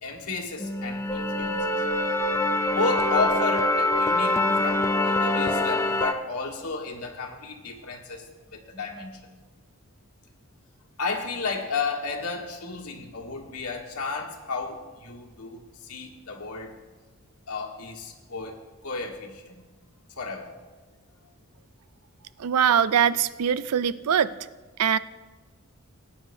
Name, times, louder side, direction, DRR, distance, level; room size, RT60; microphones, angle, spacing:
voice 1, 0.0-1.9 2.7-9.2 11.0-16.7 17.5-19.7 20.2-20.6, left 4 dB, 80° left, 1 dB, 1.6 m, -33 dB
sound 1, 0.6-6.1, left 2 dB, 15° left, 0.5 m, -24 dB
voice 2, 22.4-24.3 24.8-25.0, right 8 dB, 85° right, 16 dB, 0.4 m, -22 dB
19.0 x 9.3 x 2.7 m, 1.3 s
head